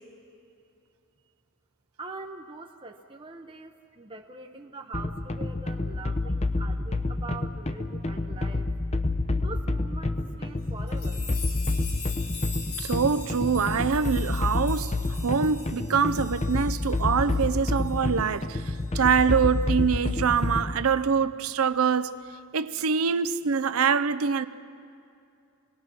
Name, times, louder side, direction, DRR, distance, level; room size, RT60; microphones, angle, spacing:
voice 1, 2.0-8.7 9.4-11.2, right 3 dB, 25° right, 0.7 m, -43 dB
sound 1, 4.9-20.9, left 2 dB, 30° left, 0.7 m, -29 dB
sound 2, 10.9-18.7 19.1-19.2 20.0-20.6, left 5 dB, 85° left, 3.2 m, -42 dB
voice 2, 12.8-22.1 22.5-24.5, right 6 dB, 75° right, 0.6 m, -25 dB
27.0 x 19.0 x 6.1 m
head